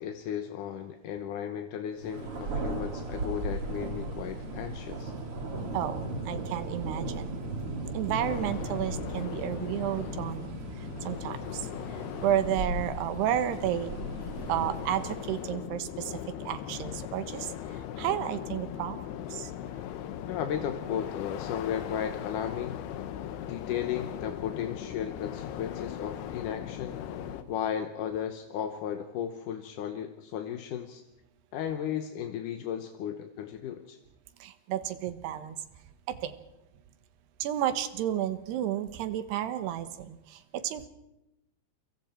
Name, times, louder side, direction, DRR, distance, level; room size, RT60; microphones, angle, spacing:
voice 1, 0.0-5.1 20.3-22.8 23.5-27.0 27.5-31.0 31.5-34.0, left 9 dB, 65° left, 6 dB, 2.3 m, -35 dB
Thunder, 2.0-15.6, right 2 dB, 35° right, 3.2 m, -37 dB
voice 2, 5.7-7.4 7.9-14.0 14.5-19.0 19.3-19.5 34.4-35.6 36.1-36.3 37.4-40.9, right 11 dB, 90° right, 11 dB, 3.3 m, -32 dB
sound 1, 8.2-27.4, left 10 dB, 85° left, 3.1 m, -39 dB
29.0 x 24.0 x 4.5 m, 0.88 s
omnidirectional pair, 4.6 m